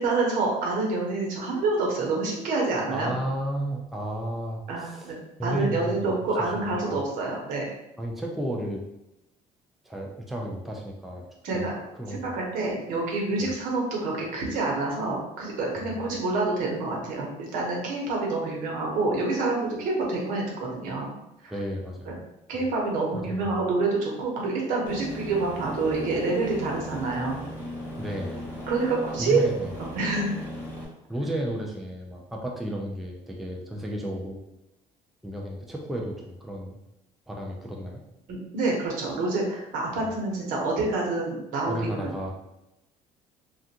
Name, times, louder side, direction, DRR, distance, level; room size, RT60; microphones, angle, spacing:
voice 1, 0.0-3.1 4.7-5.2 5.4-7.6 11.4-11.7 12.1-21.1 21.4-21.5 22.1-22.2 22.5-27.4 28.7-29.4 29.9-30.3 38.3-42.1, right 3 dB, 75° right, -2 dB, 1.0 m, -27 dB
voice 2, 2.9-5.1 5.4-6.1 6.4-7.0 8.0-8.8 9.8-11.3 11.5-12.3 13.4-13.5 15.8-16.0 21.5-22.2 23.1-23.6 28.0-28.4 29.2-29.7 31.1-34.4 35.2-36.8 37.3-38.0 40.0-40.1 41.7-42.3, right 1 dB, ahead, -1 dB, 0.4 m, -33 dB
Aircraft, 24.9-30.9, left 1 dB, 15° left, 1.0 m, -37 dB
3.4 x 2.4 x 2.8 m, 0.90 s
cardioid pair, 130°, 14 cm